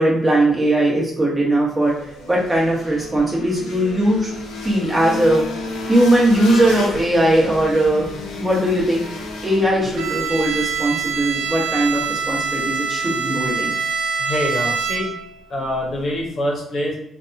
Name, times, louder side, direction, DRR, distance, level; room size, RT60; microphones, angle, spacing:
voice 1, 0.0-1.9 2.3-4.3 4.6-5.4 5.9-8.0 8.4-9.0 9.4-13.7, right 1 dB, 20° right, -5 dB, 1.1 m, -19 dB
sound 1, 1.8-11.6, left 2 dB, 90° left, 0.6 m, -32 dB
Bowed string instrument, 10.0-15.4, right 6 dB, 90° right, 0.3 m, -25 dB
voice 2, 14.2-15.1 15.5-16.9, left 1 dB, 50° left, -2 dB, 0.8 m, -24 dB
2.6 x 2.3 x 2.6 m, 0.77 s
cardioid pair, 90°, 0 cm